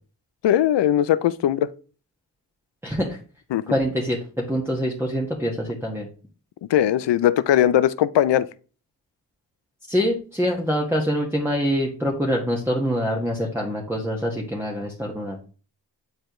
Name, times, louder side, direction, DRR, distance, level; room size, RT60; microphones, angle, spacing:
voice 1, 0.4-1.7 3.5-3.6 6.7-8.5, left 11 dB, 90° left, 0.5 m, -19 dB
voice 2, 2.8-3.2 3.7-6.1 9.9-15.4, equal, 5° right, 1.6 m, -25 dB
9.7 x 4.4 x 3.1 m
cardioid pair, 50°, 42 cm